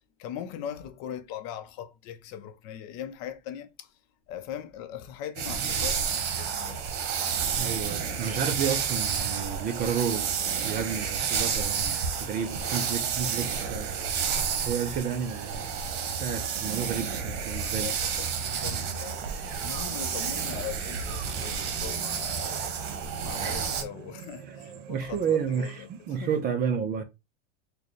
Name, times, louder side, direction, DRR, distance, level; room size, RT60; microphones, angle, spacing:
voice 1, 0.2-4.0 4.3-6.9 12.5-12.7 17.7-22.7 23.2-25.9 26.2-26.5, left 10 dB, 45° left, 0.7 m, -40 dB
sound 1, 5.4-23.8, right 7 dB, 70° right, 1.0 m, -30 dB
voice 2, 7.6-10.4 10.6-14.0 14.6-15.8 16.1-17.9 23.3-23.6 24.9-27.0, right 7 dB, 25° right, 0.5 m, -31 dB
sound 2, 8.6-26.4, right 8 dB, 90° right, 0.7 m, -47 dB
4.4 x 2.3 x 3.1 m
supercardioid pair, 135°, 36 cm